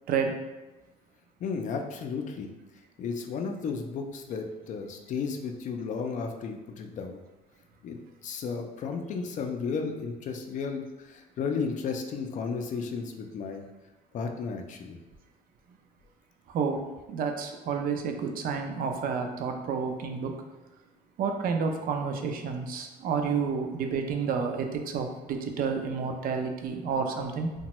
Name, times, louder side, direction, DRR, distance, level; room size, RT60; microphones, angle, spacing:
voice 1, 1.4-2.5 3.0-7.2 7.8-13.6 14.1-15.0, left 5 dB, 50° left, 4 dB, 0.4 m, -33 dB
voice 2, 16.5-16.8 17.1-20.3 21.2-27.5, right 5 dB, 60° right, 4 dB, 0.4 m, -30 dB
2.9 x 2.2 x 2.9 m, 1.1 s
cardioid pair, 110°, 17 cm